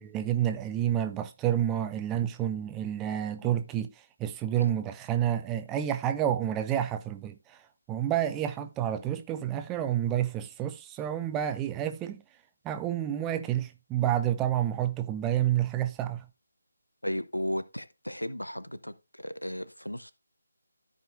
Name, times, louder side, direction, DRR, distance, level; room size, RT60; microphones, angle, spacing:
voice 1, 0.1-3.9 4.2-7.6 7.9-12.2 12.6-16.2, right 11 dB, 10° right, 0.4 m, -29 dB
voice 2, 17.0-20.1, equal, 85° left, 0.8 m, -35 dB
13.5 x 5.0 x 2.5 m
figure-of-eight pair, 155°, 0 cm